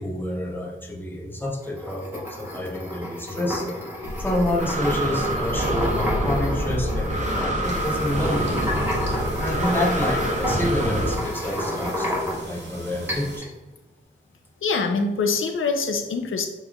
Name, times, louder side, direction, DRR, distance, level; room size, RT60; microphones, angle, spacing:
voice 1, 0.0-3.7 4.2-8.6 9.4-13.5, left 1 dB, 10° left, -1 dB, 0.8 m, -28 dB
sound 1, 1.6-12.6 13.1-13.5, left 1 dB, 10° right, 1.2 m, -31 dB
Breathing, 4.0-11.2, equal, 35° right, 0.7 m, -26 dB
sound 2, 7.6-13.4, right 1 dB, 60° right, 1.4 m, -40 dB
voice 2, 14.6-16.5, left 4 dB, 80° left, 6 dB, 0.5 m, -24 dB
5.4 x 3.1 x 2.3 m, 1.0 s
wide cardioid pair, 110°, 21 cm